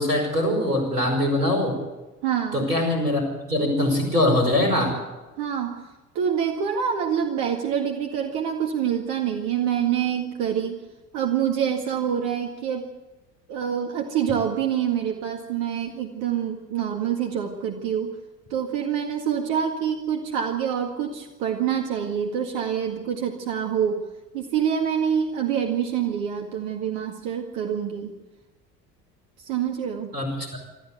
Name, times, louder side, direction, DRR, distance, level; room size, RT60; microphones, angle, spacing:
voice 1, 0.0-1.8 2.5-3.2 3.5-5.0 30.1-30.6, left 1 dB, 85° right, 3 dB, 5.6 m, -22 dB
voice 2, 2.2-2.7 5.4-5.9 6.2-10.8 11.1-12.9 13.5-18.1 18.5-24.0 24.3-28.1 29.4-30.1, right 8 dB, 50° right, 3 dB, 2.0 m, -26 dB
25.5 x 14.0 x 8.1 m, 1.1 s
figure-of-eight pair, 65°, 46 cm